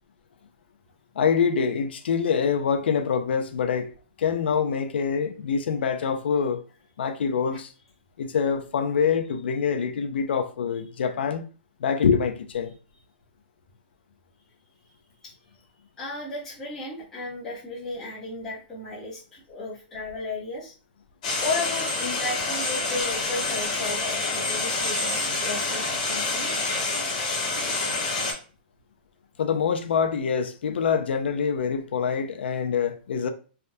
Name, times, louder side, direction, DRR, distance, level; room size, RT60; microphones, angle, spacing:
voice 1, 1.2-3.9 4.2-6.6 7.0-7.7 8.2-11.4 11.8-12.7 29.4-33.3, left 6 dB, 75° left, 0.5 m, -25 dB
voice 2, 16.0-20.7 21.4-26.5, left 2 dB, 5° left, 0.8 m, -34 dB
sound 1, 21.2-28.3, left 3 dB, 40° left, 1.1 m, -27 dB
3.4 x 2.2 x 2.6 m
hypercardioid pair, 165°, 6 cm